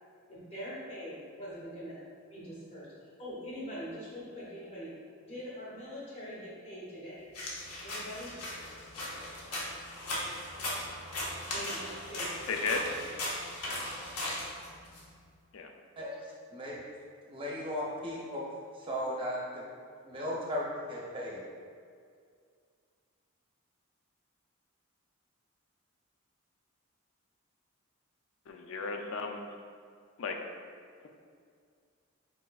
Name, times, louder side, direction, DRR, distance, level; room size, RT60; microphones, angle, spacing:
voice 1, 0.3-2.0 2.3-2.9 3.2-4.9 5.2-7.3 7.8-8.3 11.5-12.5, equal, 30° left, -7 dB, 1.1 m, -43 dB
sound 1, 7.3-15.0, left 1 dB, 90° left, 0.9 m, -38 dB
voice 2, 12.5-12.8 15.5-15.7 28.5-29.4 30.2-30.4, left 4 dB, 60° left, 4 dB, 0.4 m, -34 dB
voice 3, 17.3-18.4 18.8-19.4 20.0-21.4, equal, 25° right, -5 dB, 0.7 m, -36 dB
4.6 x 4.2 x 2.4 m, 2.2 s
head